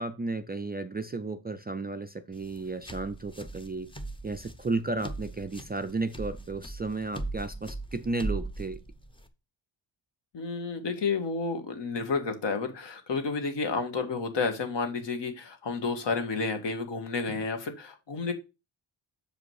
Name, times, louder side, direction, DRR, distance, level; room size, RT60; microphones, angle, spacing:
voice 1, 0.0-3.9 4.2-8.8 17.3-17.4, right 3 dB, 20° right, 8 dB, 0.3 m, -33 dB
sound 1, 2.3-9.3, right 2 dB, 10° left, 0.6 m, -39 dB
voice 2, 10.3-18.3, left 4 dB, 60° left, 6 dB, 1.7 m, -31 dB
6.9 x 5.0 x 4.7 m, 0.27 s
wide cardioid pair, 165°, 47 cm